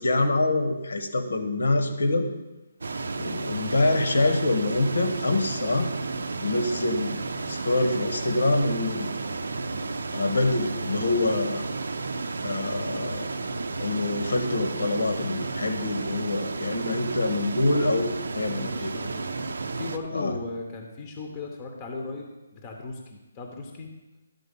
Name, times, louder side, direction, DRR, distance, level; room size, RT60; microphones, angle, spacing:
voice 1, 0.0-2.3 3.2-5.9 6.4-7.2 7.5-9.1 10.1-11.7 12.4-13.3 13.8-18.9 20.1-20.3, left 2 dB, 80° left, 6 dB, 1.2 m, -25 dB
sound 1, 2.8-20.0, right 3 dB, 80° right, 0.6 m, -32 dB
voice 2, 18.5-19.3 19.8-23.9, left 3 dB, 15° left, 2 dB, 0.7 m, -37 dB
11.5 x 3.9 x 5.3 m, 1.1 s
hypercardioid pair, 175°, 0 cm